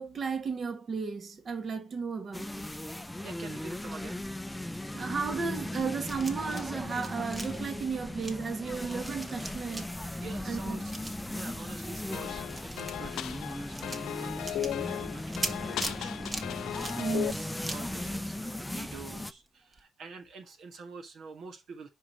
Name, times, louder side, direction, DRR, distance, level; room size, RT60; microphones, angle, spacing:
voice 1, 0.0-2.5 4.9-10.2 10.5-10.8 17.0-17.5, right 5 dB, 45° right, 1.4 m, -34 dB
sound 1, 2.3-19.3, left 1 dB, 5° left, 0.5 m, -38 dB
voice 2, 3.2-4.4 10.1-10.9 11.3-17.1 17.7-21.9, right 4 dB, 65° right, 1.4 m, -47 dB
sound 2, 5.6-6.7 6.9-19.0 19.3-19.5 19.7-19.8, right 2 dB, 25° right, 1.3 m, -42 dB
sound 3, 12.1-17.3, left 12 dB, 80° left, 0.4 m, -36 dB
4.9 x 4.8 x 5.9 m
cardioid pair, 95°, 0 cm